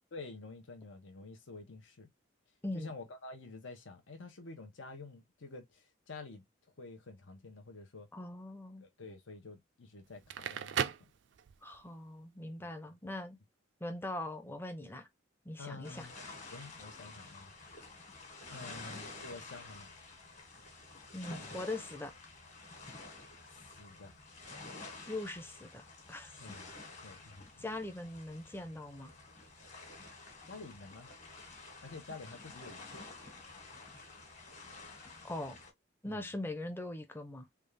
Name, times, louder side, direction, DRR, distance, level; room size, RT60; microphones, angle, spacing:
voice 1, 0.1-2.1 2.7-8.1 8.8-11.1 12.6-12.7 15.6-16.1 16.5-17.5 18.5-19.9 21.4-21.6 23.5-24.1 26.4-27.6 30.4-31.1 31.8-33.0 36.1-36.3, left 3 dB, 75° left, 0.8 m, -49 dB
voice 2, 2.6-2.9 8.1-8.8 11.6-13.4 13.8-15.1 15.4-16.1 21.1-22.1 25.1-26.3 27.6-29.1 35.2-35.6 36.0-37.5, left 1 dB, 10° left, 0.5 m, -41 dB
Crackle, 10.1-11.8, right 8 dB, 65° right, 0.3 m, -37 dB
sound 1, 15.8-35.7, left 3 dB, 35° left, 1.3 m, -50 dB
3.4 x 2.4 x 3.2 m
head